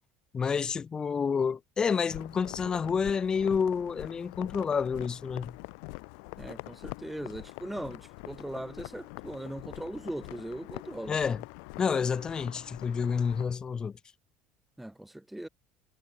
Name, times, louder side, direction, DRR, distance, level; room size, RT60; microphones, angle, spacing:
voice 1, 0.3-5.6 11.1-11.4 11.8-14.0, left 6 dB, 20° left, 1.0 m, -29 dB
sound 1, 2.1-13.5, left 40 dB or more, 80° left, 6.3 m, -44 dB
voice 2, 6.4-11.2 14.8-15.5, right 1 dB, 5° right, 1.8 m, -39 dB
cardioid pair, 160°, 4 cm